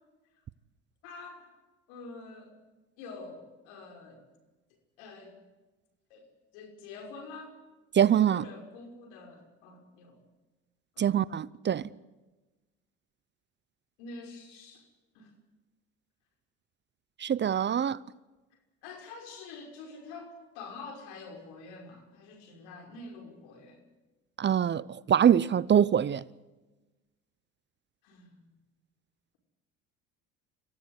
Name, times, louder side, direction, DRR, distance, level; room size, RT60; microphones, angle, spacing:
voice 1, 1.0-1.5 1.9-2.5 3.0-4.2 5.0-5.4 6.1-6.3 6.5-7.5 7.9-10.2 11.0-11.3 14.0-14.9 15.1-15.3 18.8-23.8 28.0-28.5, left 3 dB, 80° left, 5.7 m, -46 dB
voice 2, 7.9-8.4 11.0-11.9 17.2-18.0 24.4-26.2, right 9 dB, 30° right, 0.7 m, -24 dB
25.5 x 16.5 x 8.1 m
supercardioid pair, 80°, 35 cm